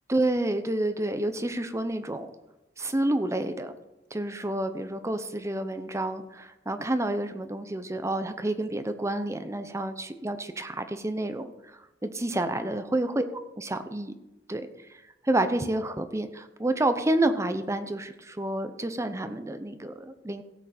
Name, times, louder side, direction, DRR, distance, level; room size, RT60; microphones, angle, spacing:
voice 1, 0.1-2.3 2.8-3.7 4.1-13.2 13.6-14.1 14.5-14.7 15.2-20.4, right 1 dB, 15° right, 9 dB, 0.7 m, -29 dB
16.5 x 7.8 x 4.3 m, 0.98 s
head